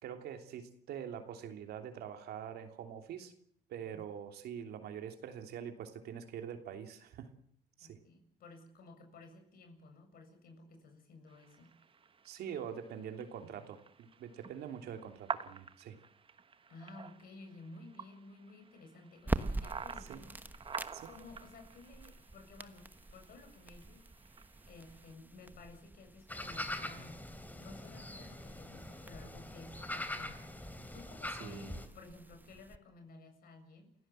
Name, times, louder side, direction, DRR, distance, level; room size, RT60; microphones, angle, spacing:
voice 1, 0.0-3.3 3.7-7.3 7.8-8.0 12.2-16.0 20.0-20.2 20.9-21.1 31.4-31.8, right 8 dB, 70° right, 6 dB, 3.2 m, -44 dB
voice 2, 7.8-11.7 16.7-20.4 21.1-24.0 24.7-27.2 27.6-30.4 30.9-33.9, left 3 dB, 60° left, 6 dB, 7.5 m, -54 dB
sound 1, 11.3-25.1, right 6 dB, 30° right, 1.3 m, -49 dB
sound 2, 19.2-32.8, right 2 dB, 10° right, 1.2 m, -45 dB
sound 3, 26.3-31.9, left 1 dB, 10° left, 2.9 m, -43 dB
28.5 x 16.0 x 7.7 m, 0.67 s
cardioid pair, 110°, 17 cm